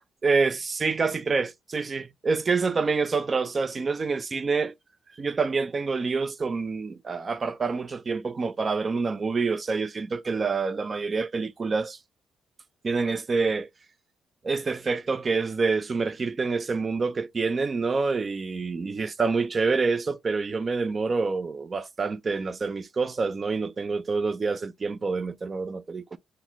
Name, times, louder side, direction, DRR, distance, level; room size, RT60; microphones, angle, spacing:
voice 1, 0.2-4.7 5.2-12.0 12.8-13.7 14.4-26.2, right 4 dB, 35° right, 0.3 m, -27 dB
4.0 x 2.1 x 2.8 m
cardioid pair, 90°, 0 cm